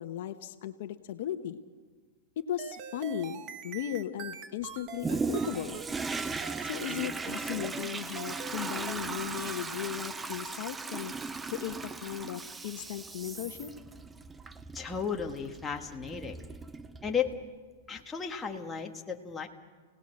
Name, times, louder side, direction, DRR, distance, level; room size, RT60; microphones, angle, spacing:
voice 1, 0.0-1.6 2.4-5.8 6.6-11.1 11.5-13.7, left 11 dB, 60° left, 9 dB, 1.1 m, -37 dB
sound 1, 2.6-9.8, right 7 dB, 35° right, 1.3 m, -44 dB
Toilet flush, 5.0-17.4 18.0-18.1, right 4 dB, 10° right, 0.6 m, -37 dB
voice 2, 14.7-16.4 17.0-17.4 17.9-19.5, left 7 dB, 10° left, 2 dB, 1.5 m, -34 dB
29.5 x 18.0 x 6.6 m, 1.5 s
supercardioid pair, 145°, 0 cm